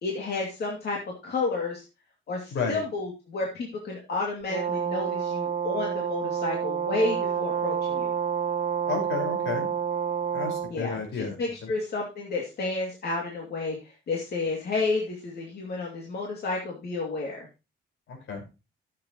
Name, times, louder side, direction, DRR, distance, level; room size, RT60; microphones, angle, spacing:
voice 1, 0.0-1.8 2.3-8.1 10.7-17.5, left 3 dB, 55° left, -1 dB, 2.5 m, -31 dB
Brass instrument, 4.5-10.7, right 8 dB, 45° right, 1.7 m, -29 dB
voice 2, 8.9-9.7 10.3-11.4 18.1-18.4, left 5 dB, 80° left, 2 dB, 4.9 m, -31 dB
14.5 x 7.6 x 3.0 m, 0.28 s
cardioid pair, 130°, 20 cm